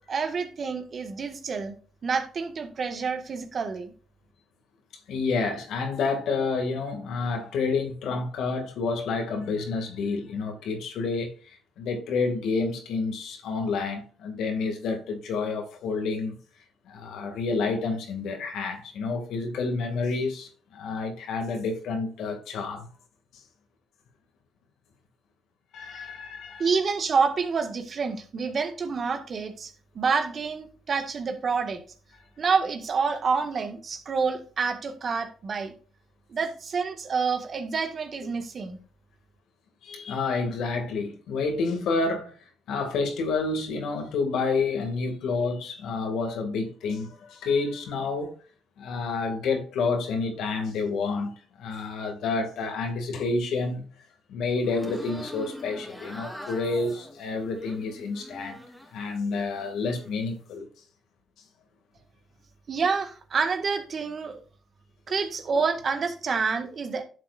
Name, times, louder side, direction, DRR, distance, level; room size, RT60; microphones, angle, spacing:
voice 1, 0.1-1.7 2.0-3.9 25.9-26.1 26.6-31.8 32.4-35.7 36.3-38.8 62.7-64.4 65.1-67.0, right 5 dB, 50° right, 1.8 m, -28 dB
voice 2, 5.1-16.4 16.9-22.9 23.3-23.4 25.7-26.7 39.8-42.3 42.7-48.3 48.8-53.9 54.3-58.6 58.9-60.7, left 4 dB, 80° left, 2.3 m, -29 dB
sound 1, 54.6-59.0 59.4-60.1, left 1 dB, 10° left, 3.1 m, -43 dB
11.5 x 7.6 x 2.6 m
cardioid pair, 90°, 0 cm